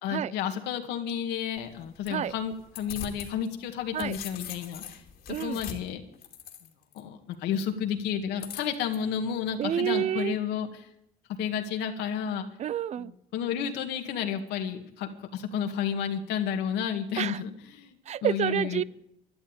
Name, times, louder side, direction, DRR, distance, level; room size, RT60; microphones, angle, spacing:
voice 1, 0.0-5.0 5.4-6.0 6.9-10.8 11.4-12.5 13.0-18.0 18.2-18.8, left 8 dB, 85° left, 5 dB, 2.0 m, -31 dB
sound 1, 1.6-3.3 3.7-7.0 8.4-9.0, left 9 dB, 65° left, 2.5 m, -42 dB
voice 2, 5.3-5.6 9.6-10.4 12.6-13.1 17.2-17.4 18.1-18.8, right 10 dB, 40° right, 22 dB, 0.5 m, -29 dB
12.5 x 11.5 x 9.0 m, 0.78 s
cardioid pair, 110°, 17 cm